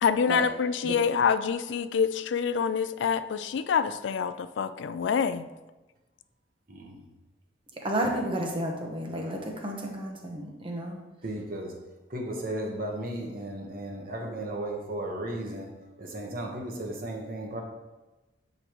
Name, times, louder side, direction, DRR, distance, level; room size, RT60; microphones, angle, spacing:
voice 1, 0.0-5.5, left 6 dB, 85° left, 12 dB, 0.3 m, -26 dB
voice 2, 6.7-7.0 11.2-11.7 12.1-15.7 16.0-17.6, right 1 dB, 50° right, 0 dB, 1.2 m, -35 dB
voice 3, 7.8-11.0, right 1 dB, 30° right, 1 dB, 1.0 m, -31 dB
8.0 x 5.1 x 3.0 m, 1.1 s
head